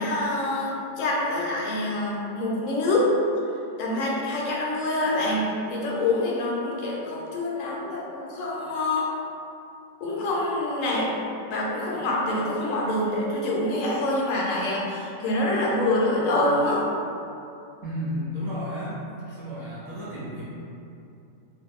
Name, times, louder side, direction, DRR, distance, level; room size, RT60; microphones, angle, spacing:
voice 1, 0.0-3.1 3.8-9.1 10.0-11.1 11.5-16.8, left 2 dB, 70° left, -4 dB, 1.0 m, -26 dB
voice 2, 17.8-19.0 19.4-20.4, equal, 40° right, -9 dB, 0.8 m, -32 dB
2.6 x 2.4 x 3.5 m, 2.7 s
omnidirectional pair, 1.5 m